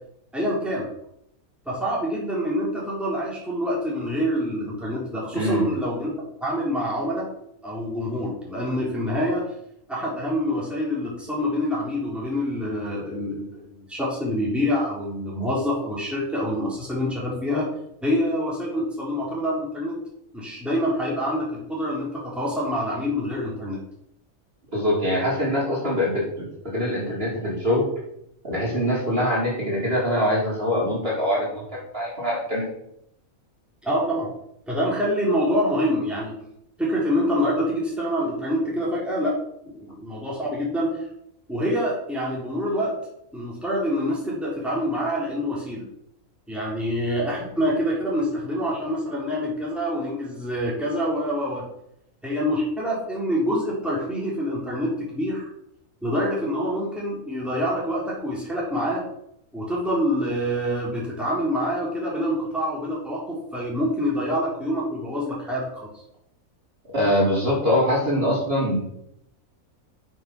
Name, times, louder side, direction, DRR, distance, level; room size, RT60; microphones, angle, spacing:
voice 1, 0.3-0.9 1.7-6.1 6.4-7.3 7.6-9.5 9.9-17.7 18.0-20.0 20.3-23.8 33.8-34.3 34.7-36.3 36.8-39.4 39.6-40.9 41.5-42.9 43.3-45.8 46.5-51.6 52.2-55.5 56.0-59.1 59.5-66.0, equal, ahead, -5 dB, 3.7 m, -26 dB
voice 2, 5.3-5.6 24.7-27.9 28.4-32.7 66.9-68.8, equal, 40° right, -5 dB, 4.2 m, -23 dB
9.5 x 7.2 x 6.2 m, 0.77 s
omnidirectional pair, 1.5 m